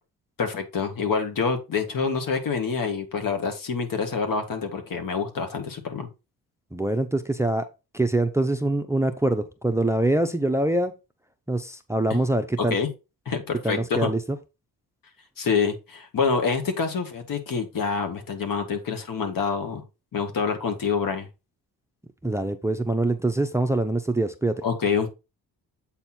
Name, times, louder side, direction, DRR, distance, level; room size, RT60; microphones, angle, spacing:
voice 1, 0.4-6.1 12.7-12.9 13.3-14.1 15.4-19.8 20.1-21.3 24.6-25.1, left 5 dB, 60° left, 5 dB, 1.9 m, -26 dB
voice 2, 6.7-7.7 7.9-10.9 11.5-12.8 13.6-14.2 22.2-24.6, right 1 dB, 5° right, 9 dB, 0.7 m, -24 dB
8.1 x 4.2 x 4.4 m, 0.27 s
cardioid pair, 90°, 37 cm